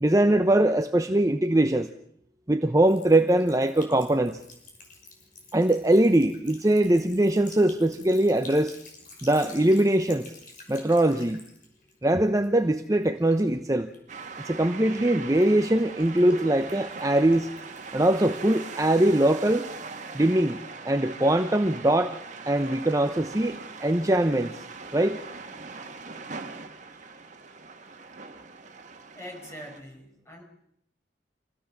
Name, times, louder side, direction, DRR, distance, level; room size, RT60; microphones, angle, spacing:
voice 1, 0.0-1.9 2.5-4.4 5.5-8.8 9.2-10.3 10.7-11.4 12.0-13.9 14.4-17.5 17.9-19.7 20.1-20.6 20.8-22.2 22.5-24.6 24.9-25.2, right 1 dB, 20° right, 7 dB, 0.8 m, -22 dB
Sink (filling or washing) / Trickle dribble, 2.8-15.0 15.3-19.2, left 2 dB, 50° left, 6.0 m, -49 dB
sound 1, 14.1-29.8, right 4 dB, 40° right, 1.8 m, -41 dB
voice 2, 29.1-30.4, equal, 15° left, 2 dB, 5.4 m, -43 dB
26.5 x 17.0 x 7.4 m, 0.73 s
head